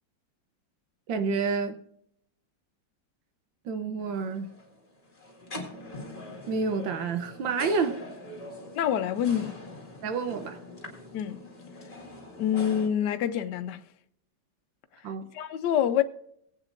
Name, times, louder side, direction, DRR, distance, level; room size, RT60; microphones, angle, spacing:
voice 1, 1.1-1.8 3.6-4.5 6.5-8.0 10.0-10.6 15.0-15.3, right 4 dB, 75° right, 1.7 m, -29 dB
sound 1, 4.0-12.9, left 1 dB, 20° left, 1.8 m, -43 dB
voice 2, 8.7-9.5 11.1-11.4 12.4-13.8 15.3-16.0, left 9 dB, 65° left, 1.2 m, -26 dB
20.5 x 8.6 x 2.6 m
omnidirectional pair, 2.1 m